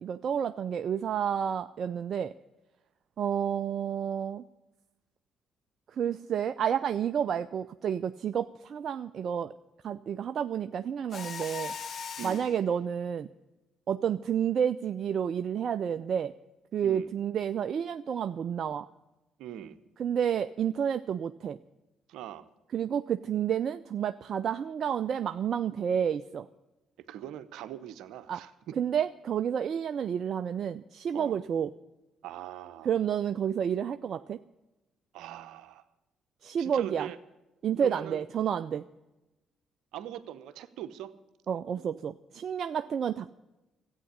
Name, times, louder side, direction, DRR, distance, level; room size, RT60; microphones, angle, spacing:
voice 1, 0.0-2.3 3.2-4.4 5.9-9.5 9.8-11.7 12.2-13.3 13.9-16.3 16.7-18.9 20.0-21.6 22.7-26.5 28.3-28.4 28.8-31.7 32.8-34.4 36.4-37.1 37.6-38.8 41.5-43.3, right 8 dB, 60° right, 10 dB, 0.4 m, -30 dB
Mechanisms, 11.1-12.6, left 6 dB, 55° left, 1.0 m, -38 dB
voice 2, 19.4-19.8 22.1-22.5 27.1-28.8 31.1-31.4 32.2-32.9 35.1-35.8 36.6-37.2 37.8-38.2 39.9-41.1, right 11 dB, 75° right, 12 dB, 0.8 m, -42 dB
13.5 x 9.0 x 9.7 m, 1.0 s
hypercardioid pair, 50°, 0 cm